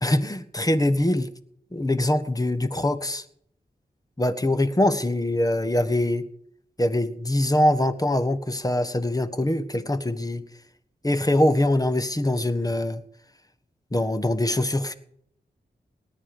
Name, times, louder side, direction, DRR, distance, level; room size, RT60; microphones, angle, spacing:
voice 1, 0.0-1.3 1.7-3.2 4.2-6.3 6.8-10.4 11.0-13.0 13.9-14.9, left 1 dB, 20° left, 12 dB, 1.4 m, -23 dB
19.0 x 9.9 x 5.3 m, 0.70 s
cardioid pair, 55°, 17 cm